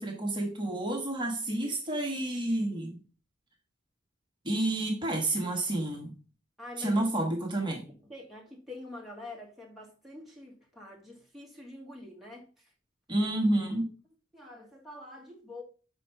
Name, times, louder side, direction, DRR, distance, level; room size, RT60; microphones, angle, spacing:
voice 1, 0.0-3.0 4.4-6.1 6.8-7.8 13.1-13.9, right 1 dB, 25° right, 1.2 m, -29 dB
voice 2, 6.6-7.1 7.7-12.5 14.3-15.6, left 2 dB, ahead, 1.9 m, -46 dB
5.5 x 4.1 x 5.7 m
head